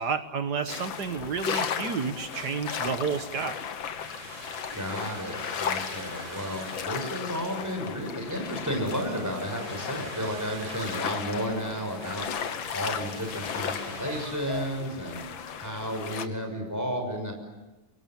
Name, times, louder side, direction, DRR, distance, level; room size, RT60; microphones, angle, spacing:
voice 1, 0.0-3.6, right 5 dB, 60° right, 9 dB, 1.8 m, -30 dB
sound 1, 0.7-16.3, left 7 dB, 85° left, 2.1 m, -35 dB
sound 2, 2.3-15.3, right 2 dB, 85° right, 5.9 m, -46 dB
voice 2, 4.7-12.3 12.7-15.2 15.6-17.3, equal, 10° right, 3 dB, 6.1 m, -32 dB
29.5 x 23.5 x 7.6 m, 1.1 s
omnidirectional pair, 2.1 m